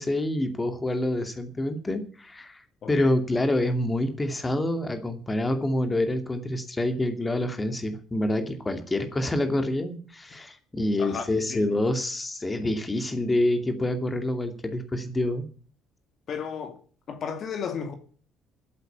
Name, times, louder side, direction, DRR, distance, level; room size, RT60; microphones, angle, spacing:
voice 1, 0.0-2.6 2.9-15.5, left 1 dB, 20° left, 2.5 m, -27 dB
voice 2, 2.8-3.1 11.0-11.7 16.3-16.8 17.1-17.9, left 6 dB, 45° left, 2.2 m, -34 dB
13.5 x 8.1 x 8.4 m
figure-of-eight pair, 50°, 0 cm